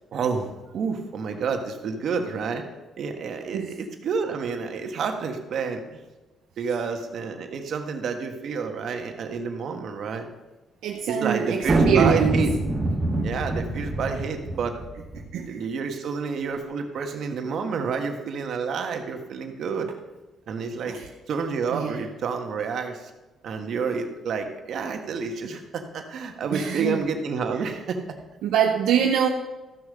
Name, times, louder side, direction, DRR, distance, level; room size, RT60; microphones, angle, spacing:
voice 1, 0.1-2.6 3.0-6.0 6.6-10.3 11.1-12.5 13.2-14.8 15.4-19.9 20.5-21.0 21.3-23.1 23.4-28.0, right 5 dB, 65° right, 5 dB, 1.5 m, -29 dB
voice 2, 10.8-12.4 15.3-15.6 20.9-21.1 21.7-22.1 26.5-27.0 27.6-27.7 28.4-29.3, right 8 dB, 90° right, 2 dB, 0.7 m, -24 dB
sound 1, 11.6-15.3, right 2 dB, 30° right, 2.3 m, -24 dB
14.0 x 6.5 x 5.2 m, 1.1 s
cardioid pair, 90°, 0 cm